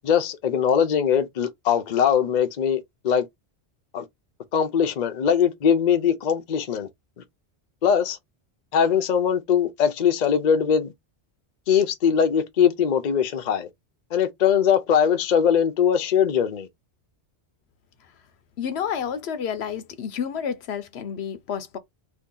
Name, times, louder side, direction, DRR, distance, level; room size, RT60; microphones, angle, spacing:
voice 1, 0.0-3.3 3.9-4.0 4.5-6.9 7.8-8.2 8.7-10.9 11.7-13.7 14.1-16.7, left 8 dB, 50° left, 0.6 m, -21 dB
voice 2, 18.6-21.8, left 8 dB, 70° left, 0.9 m, -30 dB
2.7 x 2.6 x 3.7 m
omnidirectional pair, 1.2 m